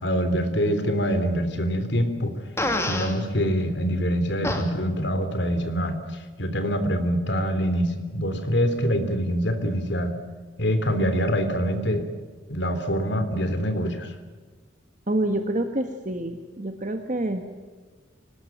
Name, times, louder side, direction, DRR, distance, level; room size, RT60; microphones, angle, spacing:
voice 1, 0.0-2.3 2.9-6.0 6.4-10.1 10.6-12.1 12.5-14.1, equal, 65° left, 9 dB, 3.3 m, -25 dB
Fart, 2.6-3.1 4.4-4.6, left 1 dB, 15° left, 2.6 m, -26 dB
voice 2, 15.1-17.5, right 1 dB, 40° right, 6 dB, 1.5 m, -27 dB
25.0 x 19.5 x 9.1 m, 1.4 s
head